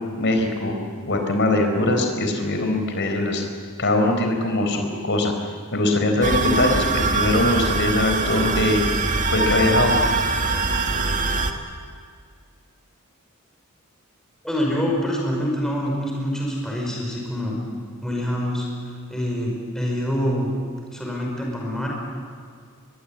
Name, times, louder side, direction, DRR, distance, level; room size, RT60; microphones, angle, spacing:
voice 1, 0.2-0.7 1.0-3.4 3.8-5.3 5.7-8.9 9.3-10.0, left 2 dB, 55° left, 4 dB, 4.3 m, -21 dB
sound 1, 6.2-11.5, right 3 dB, 35° right, 1.8 m, -23 dB
voice 2, 14.4-17.6 18.0-18.7 19.1-20.5 20.9-21.9, equal, 5° left, -2 dB, 5.3 m, -25 dB
23.0 x 22.0 x 8.9 m, 2.1 s
head